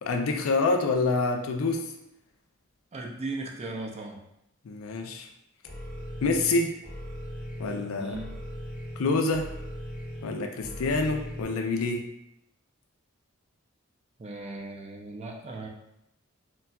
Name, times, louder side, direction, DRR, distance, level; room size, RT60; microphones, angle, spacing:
voice 1, 0.0-1.9 4.6-5.3 6.2-6.8 7.6-8.2 9.0-9.5 10.2-12.0, left 3 dB, 85° left, 4 dB, 0.4 m, -27 dB
voice 2, 2.9-4.2 8.0-8.3 14.2-15.7, right 2 dB, 30° right, 0 dB, 0.4 m, -37 dB
sound 1, 5.7-11.4, equal, 40° left, 0.8 m, -39 dB
3.9 x 2.2 x 2.2 m, 0.81 s
head